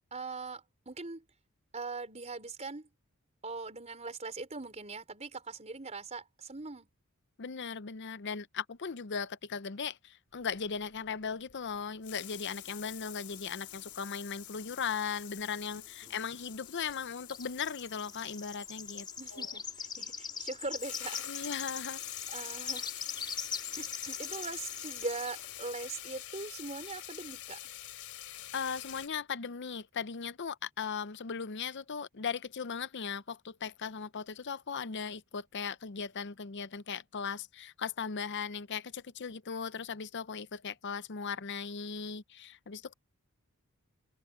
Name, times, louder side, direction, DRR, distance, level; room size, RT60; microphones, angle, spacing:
voice 1, 0.1-1.2 1.7-2.9 3.4-6.9 15.7-16.2 19.2-21.6 22.3-23.4 23.8-27.7, right 3 dB, 30° right, 4.2 m, -41 dB
voice 2, 7.4-19.5 21.3-22.0 28.5-42.9, left 6 dB, 50° left, 0.7 m, -38 dB
sound 1, 10.5-11.8 12.0-19.5 20.4-20.5 20.7-29.1, left 13 dB, 80° left, 3.1 m, -46 dB
sound 2, 12.2-13.9 14.1-15.4 15.7-15.9 16.5-25.4, left 6 dB, 20° left, 3.7 m, -42 dB
head